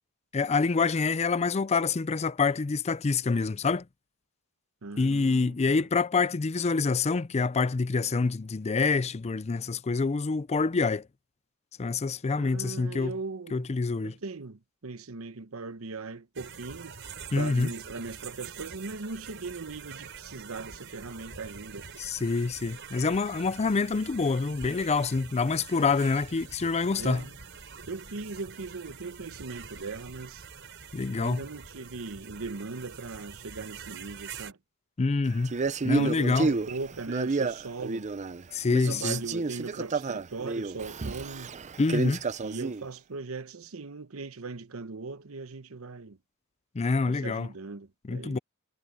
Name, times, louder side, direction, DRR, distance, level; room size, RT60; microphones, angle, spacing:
voice 1, 0.3-3.9 5.0-11.1 11.8-13.2 13.5-14.1 17.3-17.7 22.0-27.2 30.9-31.4 35.0-35.5 35.8-36.5 38.5-39.2 41.8-42.2 46.7-47.5 48.1-48.4, left 4 dB, 30° left, 0.4 m, -26 dB
voice 2, 4.8-5.8 12.4-13.7 14.0-17.0 17.4-21.9 27.0-27.3 27.9-30.5 31.2-34.6 36.0-38.1 38.7-41.5 42.4-46.2 47.1-48.4, right 3 dB, 80° right, 0.9 m, -39 dB
sound 1, 16.4-34.5, right 6 dB, 60° right, 5.3 m, -45 dB
Male speech man speaking, 35.4-38.4 38.7-42.8, right 4 dB, 35° right, 0.6 m, -30 dB
head